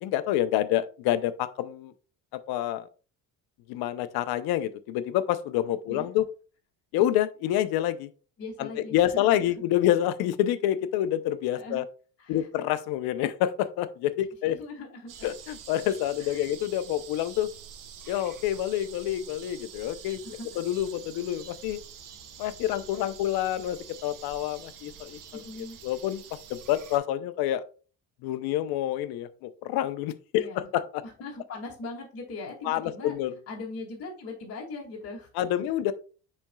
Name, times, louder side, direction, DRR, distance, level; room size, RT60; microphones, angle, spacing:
voice 1, 0.0-1.9 2.5-2.9 3.7-6.3 6.9-8.1 8.6-11.8 12.3-14.6 15.2-17.5 18.1-20.2 20.6-21.8 22.4-25.4 25.8-26.2 26.5-27.6 28.2-31.0 32.6-33.3 35.3-35.9, left 12 dB, 80° left, 12 dB, 0.8 m, -27 dB
voice 2, 8.4-9.3 11.5-11.8 12.2-12.5 14.4-15.3 16.2-16.4 20.2-20.5 25.3-25.8 30.4-30.7 31.2-33.1 33.5-35.3, left 3 dB, 40° left, -3 dB, 2.2 m, -40 dB
sound 1, 15.1-27.0, right 7 dB, 60° right, 1.1 m, -47 dB
10.0 x 4.4 x 2.3 m, 0.36 s
cardioid pair, 140°, 36 cm